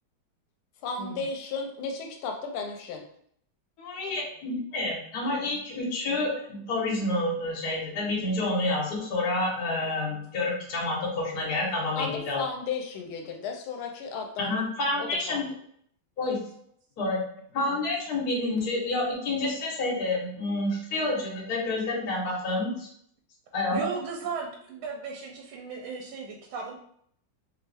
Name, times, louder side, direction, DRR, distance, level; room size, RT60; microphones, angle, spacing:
voice 1, 0.8-3.0 12.0-12.1 12.3-14.6 15.0-15.5, left 4 dB, 90° left, 3 dB, 1.5 m, -34 dB
voice 2, 3.8-12.4 14.4-15.4 16.2-16.4 17.0-17.2 17.5-22.9 23.5-23.9, left 2 dB, 50° left, -3 dB, 1.5 m, -29 dB
voice 3, 23.7-26.7, right 5 dB, 85° right, 0 dB, 1.4 m, -36 dB
3.4 x 3.0 x 3.3 m, 0.65 s
omnidirectional pair, 2.3 m